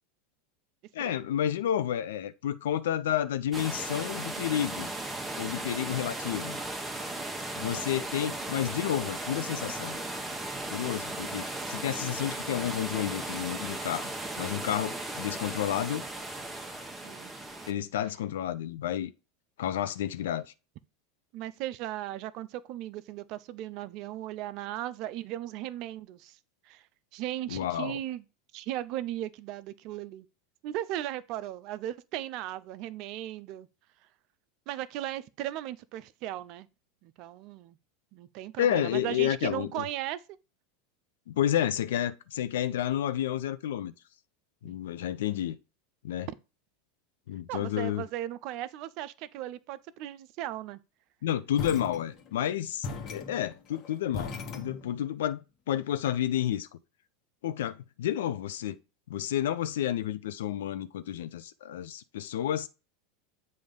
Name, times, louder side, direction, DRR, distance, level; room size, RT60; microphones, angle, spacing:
voice 1, 0.9-4.9 5.4-6.6 7.6-10.0 10.7-14.1 14.4-16.0 17.7-19.1 19.6-20.4 27.5-28.0 38.6-39.8 41.3-43.9 44.6-45.6 46.0-46.3 47.3-48.0 51.2-55.4 55.7-56.7 57.4-58.8 59.1-62.7, left 11 dB, 75° left, 0.5 m, -30 dB
sound 1, 3.5-17.7, right 2 dB, 10° right, 1.0 m, -36 dB
voice 2, 21.3-26.4 26.7-26.9 27.1-28.2 28.5-30.3 30.6-33.7 34.7-36.7 37.0-37.8 38.1-40.2 44.6-44.7 47.5-50.8, right 13 dB, 55° right, 0.4 m, -37 dB
sound 2, 51.6-52.5 52.8-55.2, left 4 dB, 45° left, 1.1 m, -39 dB
7.7 x 2.7 x 5.2 m
hypercardioid pair, 90°, 0 cm